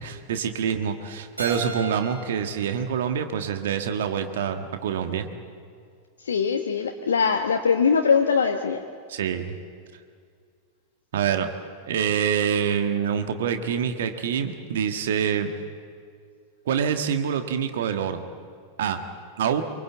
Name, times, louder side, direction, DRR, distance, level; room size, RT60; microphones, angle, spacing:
voice 1, 0.0-5.3 9.1-9.5 11.1-11.5 11.9-15.5 16.6-18.2 18.8-19.0 19.4-19.6, right 8 dB, 60° right, 7 dB, 1.6 m, -26 dB
Keyboard (musical), 1.4-4.2, right 3 dB, 80° right, 5.9 m, -38 dB
voice 2, 6.2-8.8, left 6 dB, 65° left, 4 dB, 1.1 m, -22 dB
24.0 x 23.5 x 8.2 m, 2.1 s
figure-of-eight pair, 90°, 0 cm